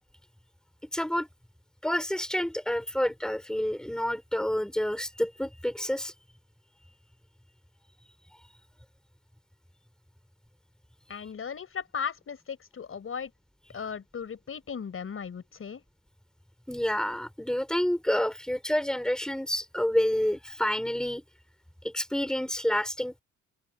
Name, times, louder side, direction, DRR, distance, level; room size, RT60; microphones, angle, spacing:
voice 1, 0.9-1.3 1.8-6.1 16.7-21.2 21.8-23.2, equal, ahead, 4.7 m, -28 dB
voice 2, 11.1-13.3 13.7-15.8, left 6 dB, 45° left, 5.2 m, -36 dB
cardioid pair, 90°, 30 cm